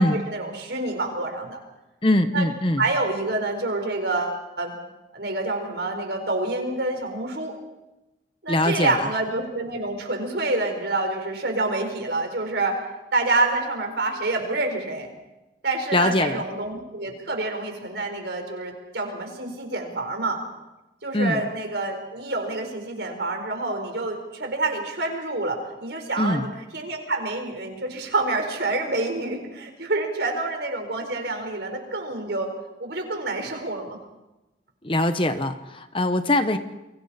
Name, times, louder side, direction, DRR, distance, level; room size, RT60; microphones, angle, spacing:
voice 1, 0.0-1.6 2.3-2.5 2.8-4.7 5.1-7.6 8.4-12.8 13.1-15.1 15.6-20.4 21.0-32.5 32.8-34.0, right 2 dB, 65° right, 4 dB, 4.6 m, -27 dB
voice 2, 2.0-2.8 8.5-9.1 15.9-16.4 21.1-21.4 26.2-26.4 34.8-36.6, left 1 dB, 30° left, 9 dB, 1.1 m, -22 dB
29.5 x 24.0 x 4.3 m, 0.99 s
head